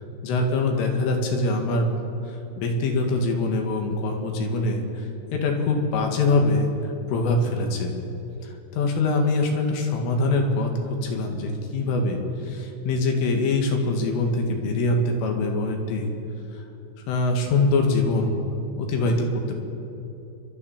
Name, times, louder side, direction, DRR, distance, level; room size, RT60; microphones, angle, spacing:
voice 1, 0.2-1.9 2.3-5.0 5.3-7.9 8.4-16.1 17.1-18.4 18.8-19.5, left 2 dB, 75° left, 2 dB, 4.5 m, -24 dB
30.0 x 12.0 x 7.4 m, 2.9 s
omnidirectional pair, 5.9 m